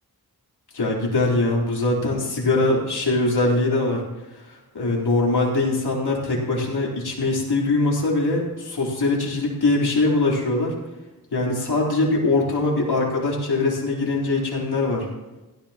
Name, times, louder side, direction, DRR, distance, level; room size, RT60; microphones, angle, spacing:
voice 1, 0.7-4.0 4.7-10.7 11.3-15.1, left 2 dB, 85° left, -3 dB, 3.8 m, -22 dB
16.5 x 13.5 x 3.0 m, 1.1 s
wide cardioid pair, 80°, 38 cm